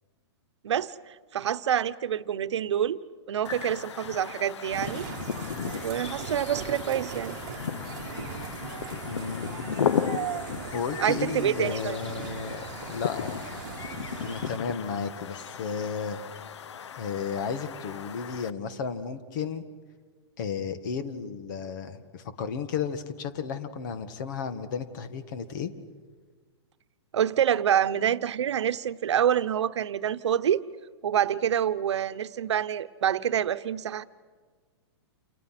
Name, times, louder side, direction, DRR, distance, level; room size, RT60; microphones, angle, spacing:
voice 1, 0.6-3.0 3.3-5.1 5.8-7.4 11.0-12.0 27.1-30.6 31.0-34.0, right 9 dB, 75° right, 12 dB, 1.0 m, -27 dB
sound 1, 3.4-18.5, left 8 dB, 80° left, 1.0 m, -35 dB
sound 2, 4.7-14.6, right 10 dB, 45° right, 1.5 m, -39 dB
voice 2, 9.1-9.8 10.7-13.4 14.2-16.2 17.0-19.7 20.4-25.7, left 6 dB, 45° left, 10 dB, 1.9 m, -33 dB
29.0 x 28.5 x 6.1 m, 1.5 s
hypercardioid pair, 165°, 15 cm